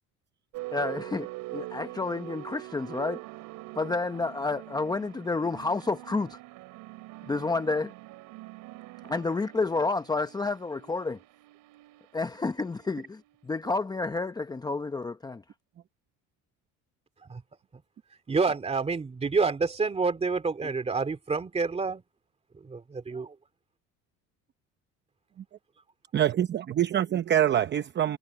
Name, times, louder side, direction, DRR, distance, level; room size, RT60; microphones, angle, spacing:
sound 1, 0.5-13.9, right 20 dB, 85° right, 7.0 m, -44 dB
voice 1, 0.7-3.2 3.8-6.4 7.2-7.9 9.0-11.2 12.1-15.4, left 3 dB, 15° left, 0.8 m, -30 dB
voice 2, 18.3-22.0 22.6-23.3, right 4 dB, 20° right, 2.5 m, -28 dB
voice 3, 26.1-28.2, right 11 dB, 35° right, 0.8 m, -25 dB
cardioid pair, 130°, 30 cm